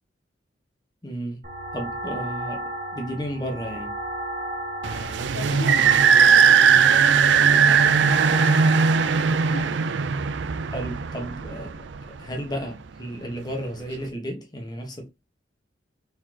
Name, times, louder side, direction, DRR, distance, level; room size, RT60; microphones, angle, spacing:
voice 1, 1.0-1.4 1.7-2.6 2.9-3.9 10.7-11.9 12.2-15.1, equal, 20° left, 1.4 m, -33 dB
sound 1, 1.4-9.6, right 1 dB, 45° right, 1.7 m, -33 dB
sound 2, 4.8-12.2, right 6 dB, 75° right, 0.4 m, -19 dB
voice 2, 5.3-9.7, left 2 dB, 80° left, 1.9 m, -39 dB
4.3 x 4.2 x 2.9 m
head